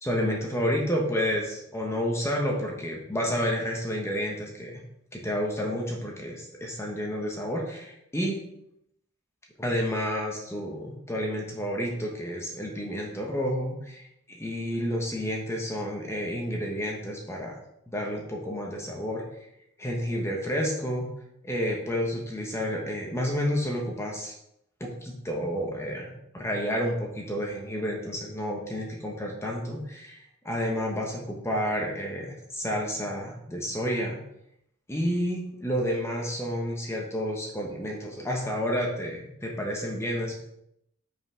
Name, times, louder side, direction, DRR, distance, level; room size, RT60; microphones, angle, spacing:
voice 1, 0.0-4.8 5.1-8.4 9.6-17.6 17.9-19.2 19.8-21.1 21.4-24.3 24.8-30.2 30.4-34.2 34.9-40.3, equal, 10° left, -1 dB, 1.1 m, -30 dB
5.6 x 5.6 x 5.5 m, 0.77 s
head